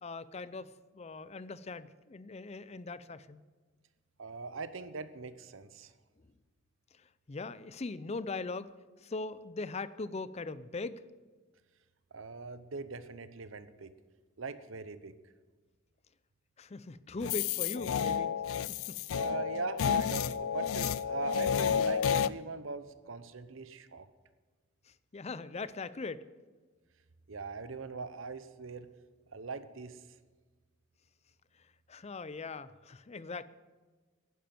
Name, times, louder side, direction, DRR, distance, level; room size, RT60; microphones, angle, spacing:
voice 1, 0.0-3.4 6.3-6.4 6.9-8.7 9.0-11.0 16.6-18.3 18.7-19.0 24.9-26.3 31.9-33.5, left 3 dB, 30° left, 16 dB, 0.5 m, -40 dB
voice 2, 4.2-5.9 12.1-13.9 14.4-15.1 19.1-24.1 27.3-28.9 29.3-30.0, right 4 dB, 65° right, 13 dB, 0.8 m, -41 dB
sound 1, 17.2-22.3, left 7 dB, 85° left, 0.4 m, -31 dB
11.5 x 10.5 x 7.6 m, 1.3 s
head